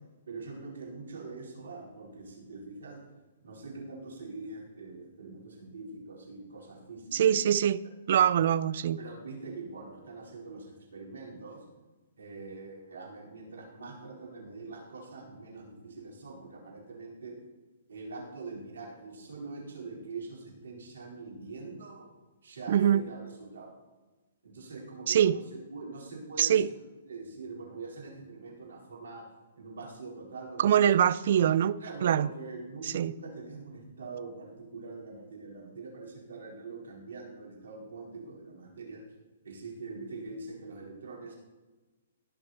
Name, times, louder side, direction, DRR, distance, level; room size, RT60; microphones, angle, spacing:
voice 1, 0.3-3.0 3.4-7.5 9.0-11.6 12.2-17.3 17.9-22.0 22.4-23.8 24.4-26.8 27.1-29.2 29.6-30.8 31.8-39.0 39.4-41.3, right 3 dB, 75° right, 4.5 m, -43 dB
voice 2, 7.1-9.0 22.7-23.0 25.1-25.4 26.4-26.7 30.6-32.3 32.8-33.1, right 9 dB, 60° right, 0.4 m, -24 dB
18.0 x 6.6 x 4.4 m
hypercardioid pair, 130°, 0 cm